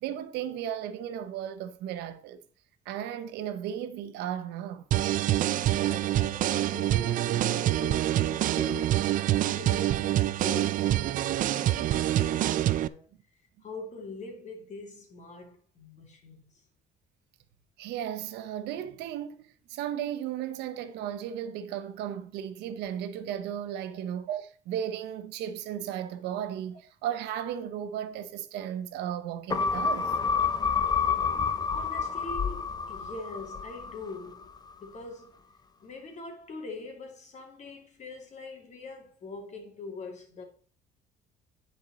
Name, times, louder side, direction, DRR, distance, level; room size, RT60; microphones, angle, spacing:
voice 1, 0.0-2.4 2.9-4.8 17.8-30.2, right 10 dB, 90° right, 0.8 m, -35 dB
sound 1, 4.9-12.9, right 13 dB, 55° right, 0.4 m, -26 dB
voice 2, 5.5-9.3 9.5-13.1 13.6-16.6 23.9-24.1 31.3-34.5 34.8-35.4 35.8-40.4, left 3 dB, 45° left, 2.4 m, -43 dB
sound 2, 29.5-34.2 34.6-34.7, left 6 dB, 25° left, 0.7 m, -28 dB
10.0 x 4.6 x 4.0 m
cardioid pair, 110°, 17 cm